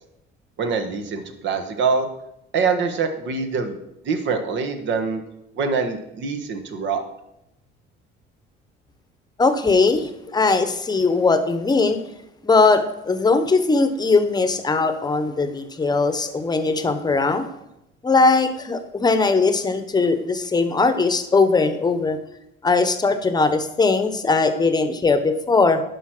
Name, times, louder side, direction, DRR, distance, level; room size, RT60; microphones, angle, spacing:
voice 1, 0.6-2.1 2.5-3.8 4.0-5.2 5.6-7.0, right 5 dB, 60° right, 6 dB, 1.5 m, -24 dB
voice 2, 9.4-12.0 12.4-17.5 18.0-22.2 22.6-25.8, left 3 dB, 20° left, 10 dB, 0.9 m, -19 dB
11.0 x 5.1 x 6.1 m, 0.85 s
cardioid pair, 110°, 21 cm